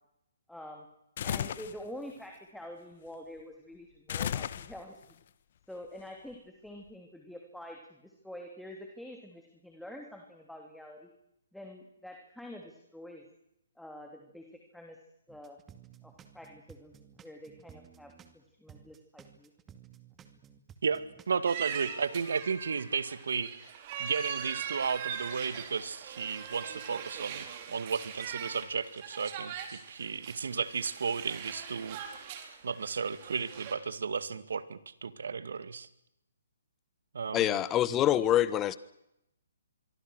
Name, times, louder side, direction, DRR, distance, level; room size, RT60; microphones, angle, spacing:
voice 1, 0.5-0.9 1.2-5.0 5.7-11.1 11.5-13.2 13.8-14.5 14.7-15.0 15.3-15.6 16.0-16.9 17.2-19.5, left 1 dB, ahead, 2 dB, 2.9 m, -47 dB
sound 1, 1.2-1.8 4.1-5.0, left 9 dB, 50° left, 1.2 m, -34 dB
sound 2, 15.3-18.4 18.7-21.3, right 9 dB, 15° right, 2.2 m, -55 dB
voice 2, 21.3-23.5 24.0-32.0 32.6-35.9 37.1-37.6, right 5 dB, 70° right, 14 dB, 2.0 m, -33 dB
sound 3, 21.5-33.8, right 8 dB, 35° right, 4.2 m, -41 dB
voice 3, 37.3-38.8, left 12 dB, 20° left, 17 dB, 1.2 m, -25 dB
25.5 x 23.5 x 6.4 m, 0.82 s
hypercardioid pair, 145°, 0 cm